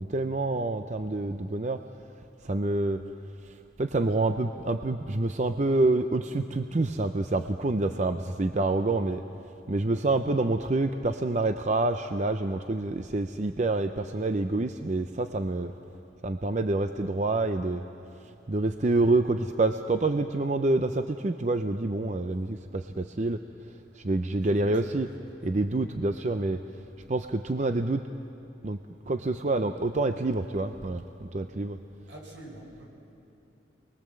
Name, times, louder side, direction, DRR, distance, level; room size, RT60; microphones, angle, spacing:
voice 1, 0.0-1.8 2.4-3.0 3.8-9.2 9.7-15.7 16.2-17.8 18.5-23.4 24.0-25.1 25.4-26.6 27.1-28.0 28.6-28.8 29.1-31.8, right 2 dB, 40° right, 8 dB, 0.6 m, -27 dB
voice 2, 32.1-32.8, right 1 dB, 80° right, -2 dB, 6.9 m, -45 dB
27.5 x 21.0 x 7.6 m, 2.8 s
head